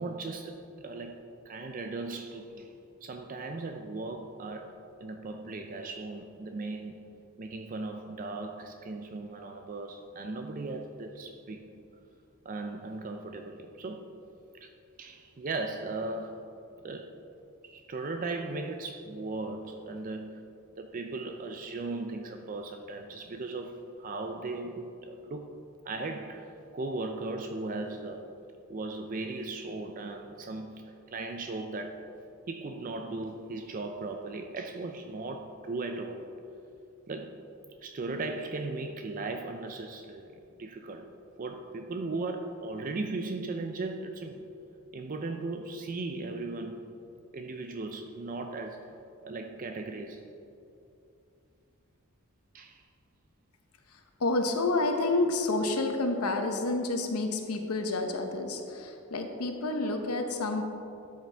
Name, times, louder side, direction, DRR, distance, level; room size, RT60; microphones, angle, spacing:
voice 1, 0.0-2.7 3.0-4.7 5.0-7.0 7.4-11.7 12.4-14.1 14.6-14.7 15.0-16.6 16.8-17.1 17.6-20.5 20.8-25.5 25.8-28.3 28.7-32.2 32.5-36.3 37.1-37.4 37.8-41.1 41.4-44.5 44.9-46.9 47.3-49.0 49.2-50.3 52.5-52.8, right 3 dB, 40° right, 5 dB, 0.4 m, -37 dB
voice 2, 53.9-60.6, left 2 dB, 85° left, 5 dB, 0.9 m, -29 dB
12.5 x 6.6 x 3.4 m, 2.7 s
head